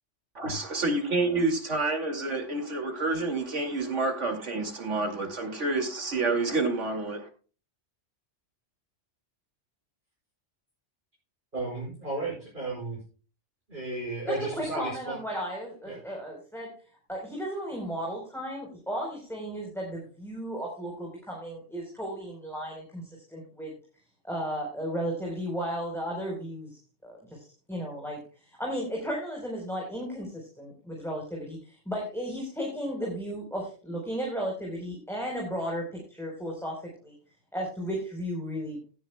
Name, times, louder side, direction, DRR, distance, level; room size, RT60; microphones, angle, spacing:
voice 1, 0.3-7.3, right 3 dB, 85° right, 2.8 m, -28 dB
voice 2, 11.5-13.0 13.7-15.2 15.9-16.0, right 2 dB, 45° right, 5.8 m, -34 dB
voice 3, 14.5-16.7 17.1-23.7 24.2-26.7 27.0-27.4 27.7-37.1 37.5-38.8, equal, ahead, 4.1 m, -34 dB
16.5 x 10.0 x 2.3 m
omnidirectional pair, 1.2 m